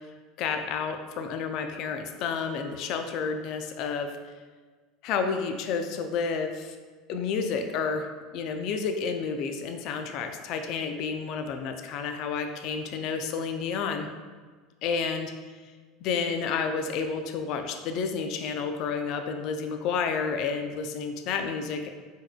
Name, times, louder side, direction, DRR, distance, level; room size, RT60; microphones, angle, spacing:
voice 1, 0.4-4.1 5.0-6.8 7.1-14.1 14.8-15.3 16.0-21.9, left 5 dB, 60° left, 6 dB, 0.4 m, -30 dB
4.5 x 4.5 x 2.2 m, 1.4 s
hypercardioid pair, 80°, 0 cm